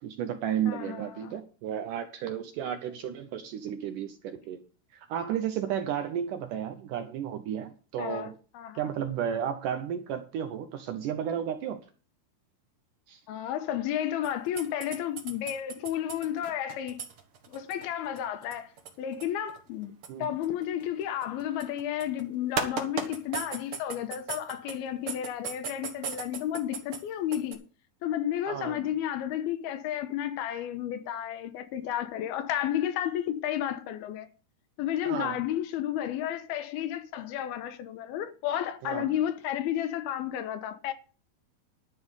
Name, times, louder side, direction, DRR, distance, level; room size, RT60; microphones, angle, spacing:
voice 1, 0.0-4.6 4.9-8.4 8.8-11.8 13.1-13.2 20.1-20.4 28.5-28.8 35.1-35.4 38.8-39.1, right 9 dB, 75° right, 2.0 m, -33 dB
voice 2, 0.7-1.3 3.0-3.1 8.0-8.8 13.3-17.0 17.5-18.7 19.0-19.9 20.2-27.6 28.0-34.3 34.8-40.9, left 11 dB, 85° left, 2.8 m, -32 dB
sound 1, 14.2-22.2 22.6-24.8 25.1-27.0 27.3-27.5, right 6 dB, 60° right, 1.5 m, -36 dB
11.5 x 5.3 x 7.9 m
omnidirectional pair, 4.5 m